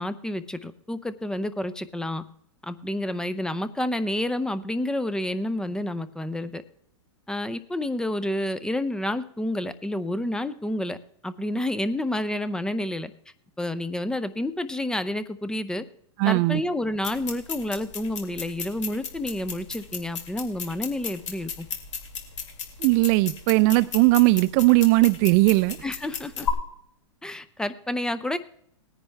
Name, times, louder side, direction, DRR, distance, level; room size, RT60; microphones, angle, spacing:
voice 1, 0.0-2.2 2.6-6.6 7.3-11.0 11.2-13.1 13.6-15.9 16.2-21.7 25.8-26.5 27.2-28.4, left 1 dB, 5° left, 0.5 m, -29 dB
voice 2, 16.2-16.6 22.8-25.8, right 21 dB, 40° right, 0.5 m, -19 dB
sound 1, 17.0-26.5, left 7 dB, 75° left, 2.3 m, -35 dB
18.5 x 10.0 x 3.4 m
hypercardioid pair, 135°, 16 cm